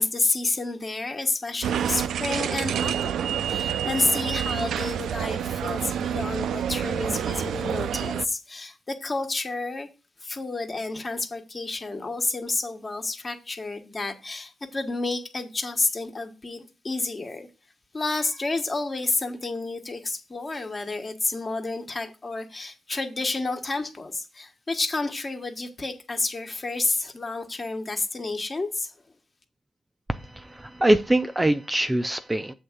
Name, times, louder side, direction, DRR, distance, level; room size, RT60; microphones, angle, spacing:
voice 1, 0.0-9.9 10.2-17.5 17.9-28.9, left 3 dB, 30° left, 1.3 m, -30 dB
sound 1, 1.6-8.3, right 9 dB, 85° right, 0.4 m, -28 dB
voice 2, 30.1-32.5, right 1 dB, 10° right, 0.5 m, -23 dB
7.7 x 3.6 x 6.6 m
cardioid pair, 110°, 0 cm